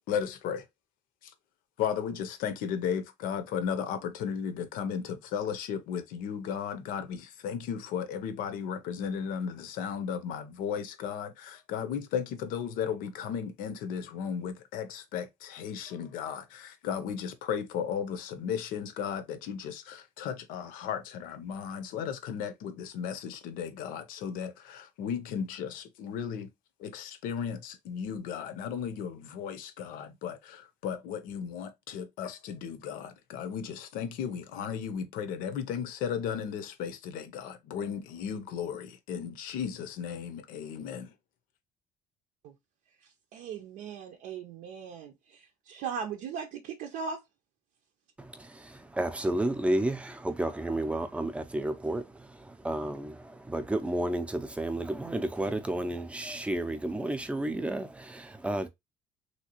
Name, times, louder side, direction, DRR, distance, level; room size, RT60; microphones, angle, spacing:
voice 1, 0.1-0.6 1.2-1.3 1.8-26.5 26.8-41.1, left 7 dB, 85° left, 0.7 m, -35 dB
voice 2, 43.3-47.2, right 6 dB, 80° right, 0.6 m, -38 dB
voice 3, 48.2-58.7, right 1 dB, 10° right, 0.5 m, -32 dB
3.2 x 2.8 x 2.9 m
cardioid pair, 140°, 14 cm